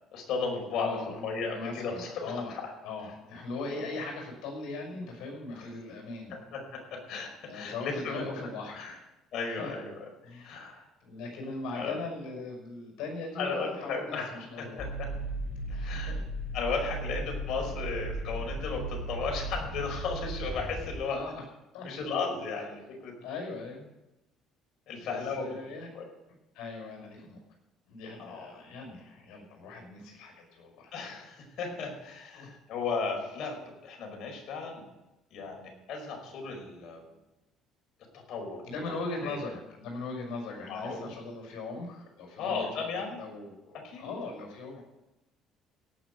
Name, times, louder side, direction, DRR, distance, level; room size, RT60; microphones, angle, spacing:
voice 1, 0.1-2.7 3.7-3.9 5.5-5.7 6.5-8.5 8.8-8.9 9.3-9.9 10.4-10.9 11.7-12.0 13.4-14.3 14.6-15.1 15.7-16.1 16.5-21.2 21.8-23.1 24.9-25.6 25.9-26.0 28.2-28.5 30.9-33.6 33.8-34.8 35.3-37.0 38.1-38.9 39.2-39.4 40.7-41.1 42.4-43.2 43.8-44.1, left 4 dB, 60° left, 0 dB, 5.3 m, -35 dB
voice 2, 0.7-1.2 1.4-2.5 2.8-6.3 7.5-9.0 9.5-9.7 10.2-14.9 15.7-16.2 21.1-21.4 21.7-21.9 23.2-23.9 25.0-25.9 26.5-27.4 27.9-30.9 32.3-32.5 38.6-44.8, left 3 dB, 80° left, 2 dB, 5.5 m, -39 dB
sound 1, 14.8-21.0, right 1 dB, 30° left, 3.3 m, -36 dB
17.5 x 6.4 x 7.9 m, 0.97 s
cardioid pair, 120°, 0 cm